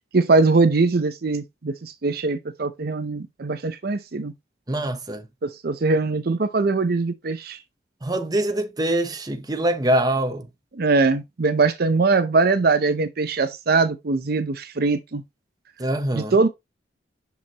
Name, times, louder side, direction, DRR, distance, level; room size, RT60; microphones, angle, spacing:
voice 1, 0.1-4.3 5.4-7.6 10.8-15.2 16.1-16.5, right 3 dB, 55° right, 0.6 m, -21 dB
voice 2, 4.7-5.3 8.0-10.5 15.8-16.4, right 1 dB, 20° right, 0.8 m, -24 dB
7.0 x 6.1 x 2.9 m
head